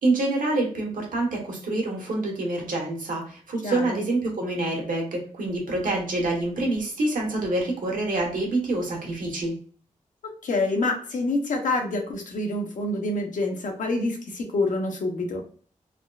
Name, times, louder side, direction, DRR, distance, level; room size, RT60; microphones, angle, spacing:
voice 1, 0.0-9.5, right 2 dB, 80° right, 0 dB, 1.1 m, -26 dB
voice 2, 3.6-4.0 10.4-15.4, left 2 dB, 70° left, 3 dB, 0.7 m, -27 dB
3.6 x 2.3 x 2.3 m, 0.43 s
wide cardioid pair, 170°, 14 cm